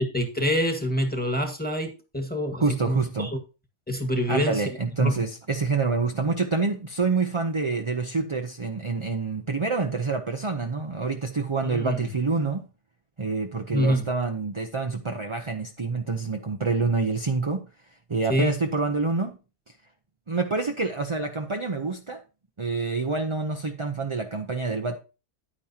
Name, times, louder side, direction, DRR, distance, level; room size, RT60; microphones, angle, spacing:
voice 1, 0.1-3.4 3.9-4.6 5.0-5.2 11.6-12.0 13.7-14.0 18.3-18.5, equal, 5° left, 1.6 m, -26 dB
voice 2, 2.6-3.3 4.3-12.7 13.2-17.7 18.1-19.4 20.3-22.2 22.6-25.0, right 4 dB, 30° right, 0.6 m, -27 dB
10.0 x 9.2 x 2.8 m
omnidirectional pair, 1.6 m